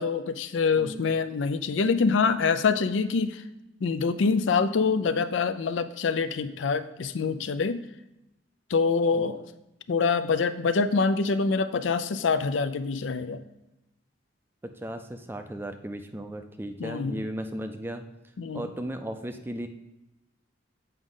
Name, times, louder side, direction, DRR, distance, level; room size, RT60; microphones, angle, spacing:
voice 1, 0.0-3.4 3.8-7.8 8.7-9.4 9.9-13.4 16.8-17.2 18.4-18.6, left 4 dB, 80° left, 12 dB, 0.4 m, -25 dB
voice 2, 0.8-1.1 9.1-9.3 14.6-18.0 18.5-19.7, right 1 dB, 10° right, 7 dB, 0.4 m, -36 dB
8.0 x 5.0 x 3.7 m, 0.94 s
head